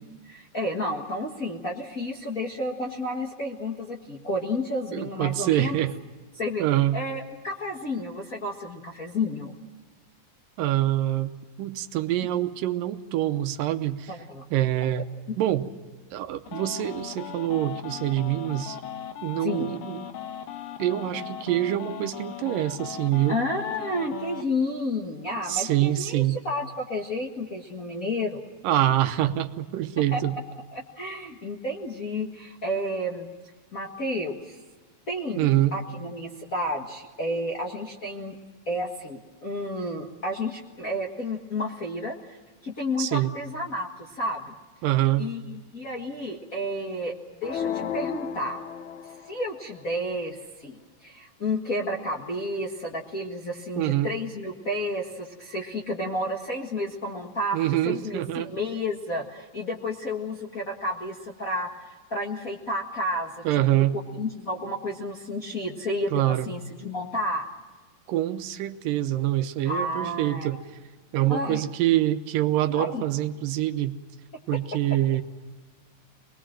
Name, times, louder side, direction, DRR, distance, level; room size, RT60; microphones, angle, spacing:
voice 1, 0.0-5.8 6.4-6.6 6.9-9.5 14.1-14.4 19.4-19.7 23.3-28.4 30.1-30.2 30.7-33.3 33.7-34.6 35.1-38.4 38.6-42.4 42.6-44.5 45.2-47.1 47.4-48.6 49.3-63.8 64.1-67.5 69.6-70.5 71.3-71.6 72.7-73.0 74.5-74.6, left 1 dB, 35° left, -2 dB, 1.4 m, -31 dB
voice 2, 4.9-5.9 6.6-7.0 10.6-14.1 14.5-15.1 15.4-15.7 16.1-18.8 19.2-20.1 20.8-23.4 25.5-26.4 28.6-30.4 35.4-35.8 43.0-43.3 44.8-45.3 53.8-54.1 57.5-58.5 63.4-64.0 66.1-66.5 68.1-70.6 71.1-74.0 74.5-75.2, right 13 dB, 80° right, 9 dB, 2.5 m, -25 dB
sound 1, 16.5-24.4, left 10 dB, 80° left, 2.8 m, -38 dB
sound 2, 47.4-49.5, left 8 dB, 65° left, 2.3 m, -33 dB
25.0 x 20.5 x 7.5 m, 1.3 s
omnidirectional pair, 4.0 m